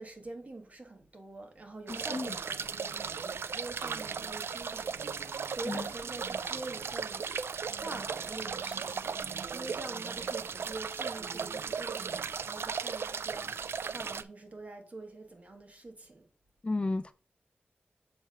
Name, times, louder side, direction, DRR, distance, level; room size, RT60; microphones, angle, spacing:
voice 1, 0.0-7.3 7.7-9.2 9.5-16.3, right 2 dB, 35° right, 1.4 m, -45 dB
voice 2, 1.9-2.4 5.7-5.9 16.6-17.1, left 2 dB, 25° left, 0.4 m, -33 dB
sound 1, 1.9-14.2, right 6 dB, 90° right, 0.3 m, -36 dB
7.0 x 3.2 x 5.5 m
wide cardioid pair, 115°, 4 cm